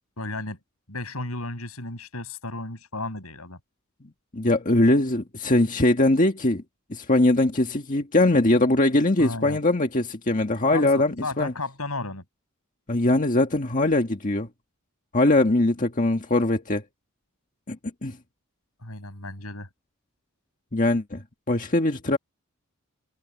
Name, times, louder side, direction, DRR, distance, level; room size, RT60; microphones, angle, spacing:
voice 1, 0.2-0.6 0.9-3.6 9.2-9.6 10.7-12.2 18.8-19.7, left 2 dB, 85° left, 7.8 m, -34 dB
voice 2, 4.3-6.6 6.9-11.5 12.9-14.5 15.1-16.8 17.7-17.8 18.0-18.2 20.7-22.2, left 2 dB, 40° left, 1.7 m, -21 dB
head